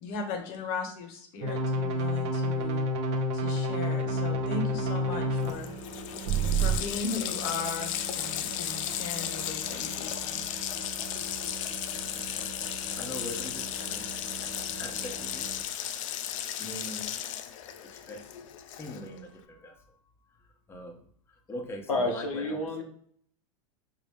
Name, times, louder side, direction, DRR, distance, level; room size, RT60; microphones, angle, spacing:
voice 1, 0.0-2.9 3.3-5.7 6.6-10.4, left 4 dB, 50° left, 4 dB, 0.9 m, -37 dB
sound 1, 1.4-5.5 6.3-6.8, right 1 dB, 60° right, 0.7 m, -28 dB
sound 2, 4.1-15.6, right 6 dB, 30° right, 0.4 m, -45 dB
Water tap faucet, 5.1-5.2 5.4-19.2, left 10 dB, 70° left, 0.4 m, -35 dB
voice 2, 13.0-14.1 14.8-15.4 16.6-17.1 17.9-18.2 18.8-19.7 20.7-20.9 21.5-22.2, left 1 dB, 15° left, 2 dB, 0.6 m, -41 dB
voice 3, 21.9-22.8, left 2 dB, 90° left, 3 dB, 0.8 m, -29 dB
4.8 x 2.0 x 3.4 m, 0.63 s
hypercardioid pair, 110°, 17 cm